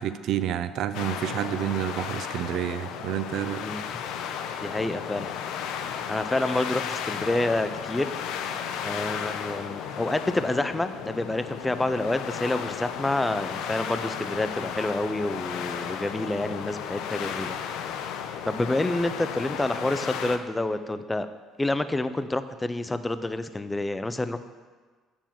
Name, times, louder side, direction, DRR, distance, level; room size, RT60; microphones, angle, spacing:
voice 1, 0.0-3.6, right 10 dB, 60° right, 12 dB, 0.4 m, -29 dB
sound 1, 0.9-20.4, left 8 dB, 75° left, 0.6 m, -34 dB
voice 2, 4.6-5.3 6.1-8.1 8.8-17.6 18.4-21.3 21.6-24.4, left 2 dB, 10° left, 11 dB, 0.4 m, -28 dB
7.0 x 5.7 x 7.4 m, 1.4 s
cardioid pair, 135°, 0 cm